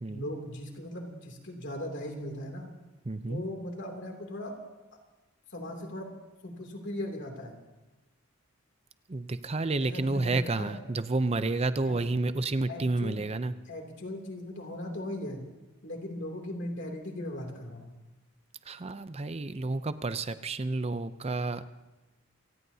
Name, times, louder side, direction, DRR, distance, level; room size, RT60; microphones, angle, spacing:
voice 1, 0.1-2.7 3.3-4.6 5.5-6.1 6.4-7.6 9.8-10.8 11.8-12.0 12.7-13.2 13.6-15.4 15.8-17.9, left 1 dB, 55° left, 2 dB, 2.8 m, -38 dB
voice 2, 3.1-3.4 9.1-13.5 18.7-21.6, right 2 dB, 30° right, 12 dB, 0.6 m, -30 dB
27.5 x 17.0 x 2.8 m, 1.1 s
head